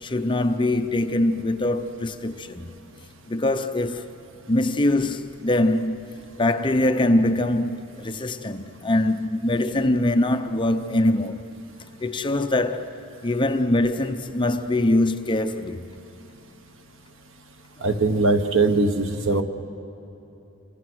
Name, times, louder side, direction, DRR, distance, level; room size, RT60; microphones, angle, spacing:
voice 1, 0.0-2.7 3.3-4.1 4.5-11.6 12.0-12.9 13.2-15.9, left 1 dB, 25° left, 0.7 m, -23 dB
voice 2, 17.8-19.4, right 3 dB, 65° right, 1.3 m, -21 dB
28.0 x 25.5 x 6.3 m
head